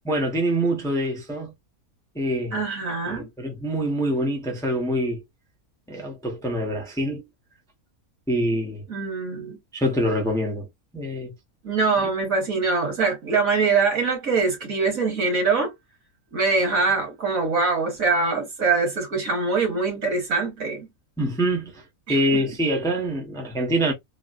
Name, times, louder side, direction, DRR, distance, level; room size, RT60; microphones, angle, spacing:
voice 1, 0.0-1.5 2.1-2.6 3.1-5.2 5.9-7.2 8.3-8.8 9.7-10.7 10.9-11.3 21.2-21.8 22.1-23.9, equal, 5° left, 0.7 m, -25 dB
voice 2, 2.5-3.3 8.9-9.6 11.6-15.7 16.3-20.9 22.1-22.4, right 4 dB, 70° right, 2.0 m, -23 dB
3.8 x 2.1 x 2.5 m
omnidirectional pair, 1.5 m